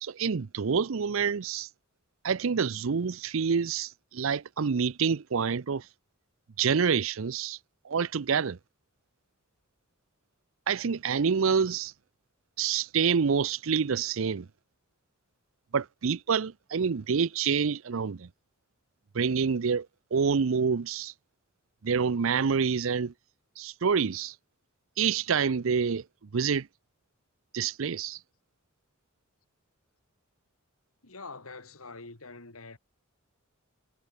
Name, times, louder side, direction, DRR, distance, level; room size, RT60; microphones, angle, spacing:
voice 1, 0.0-1.7 2.2-5.8 6.6-7.6 7.8-8.6 10.7-11.9 12.6-14.5 15.7-18.3 19.1-19.9 20.1-21.1 21.8-23.1 23.6-24.3 25.0-26.0 26.3-26.7 27.5-28.2, right 6 dB, 70° right, 0.5 m, -27 dB
voice 2, 31.0-32.8, left 3 dB, 80° left, 3.1 m, -45 dB
head